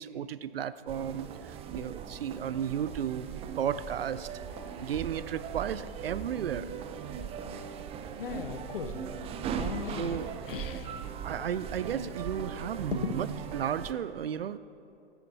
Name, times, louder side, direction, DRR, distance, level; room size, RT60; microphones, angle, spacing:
voice 1, 0.0-4.3 4.6-6.7 10.0-10.2 11.2-13.3 13.5-14.6, right 9 dB, 80° right, 16 dB, 0.6 m, -34 dB
sound 1, 0.9-13.9, right 7 dB, 20° right, 0.5 m, -39 dB
voice 2, 8.2-9.0 9.5-10.9 12.9-13.2, left 7 dB, 70° left, 9 dB, 1.0 m, -37 dB
15.5 x 10.5 x 4.1 m, 2.7 s
hypercardioid pair, 115°, 29 cm